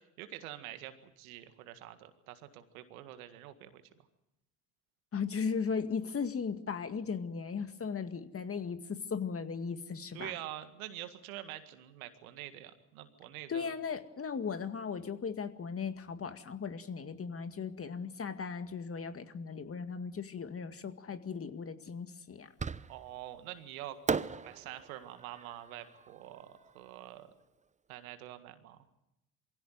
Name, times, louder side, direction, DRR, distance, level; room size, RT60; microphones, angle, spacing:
voice 1, 0.0-3.8 10.1-13.7 22.9-24.0 24.4-27.3 27.9-28.8, right 13 dB, 80° right, 10 dB, 1.9 m, -46 dB
voice 2, 5.1-10.3 13.5-22.5, left 6 dB, 30° left, 9 dB, 2.0 m, -37 dB
Fireworks, 22.6-23.3 24.1-27.2, right 5 dB, 15° right, 0.8 m, -38 dB
23.5 x 16.5 x 9.3 m, 0.86 s
hypercardioid pair, 65°, 42 cm